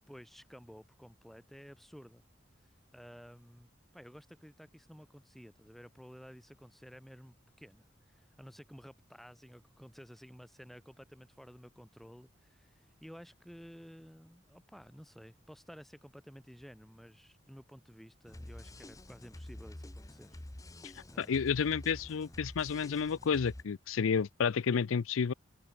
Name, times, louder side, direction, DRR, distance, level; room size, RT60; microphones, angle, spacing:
voice 1, 0.1-2.3 2.6-20.4 21.1-21.7, equal, ahead, 4.1 m, -53 dB
sound 1, 18.3-23.6, left 1 dB, 15° left, 0.8 m, -48 dB
voice 2, 21.2-25.3, left 6 dB, 90° left, 0.5 m, -30 dB
head